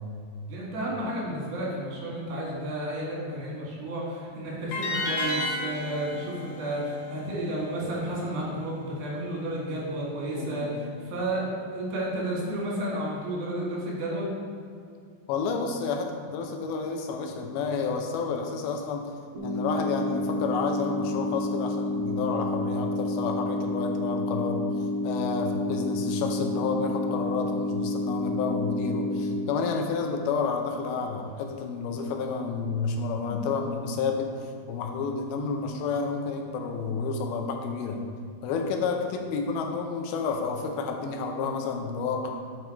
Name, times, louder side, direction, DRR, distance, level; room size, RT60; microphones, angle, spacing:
voice 1, 0.5-14.3, right 1 dB, 75° right, -5 dB, 3.9 m, -32 dB
sound 1, 4.7-7.9, left 1 dB, 55° left, 2.7 m, -32 dB
voice 2, 10.3-10.9 15.3-19.1 19.4-24.6 25.0-34.3 34.7-38.0 38.4-42.3, left 5 dB, 85° left, 3 dB, 2.6 m, -30 dB
sound 2, 19.3-29.4, left 1 dB, 40° right, 2.1 m, -29 dB
9.1 x 4.7 x 4.5 m, 2.3 s
omnidirectional pair, 4.3 m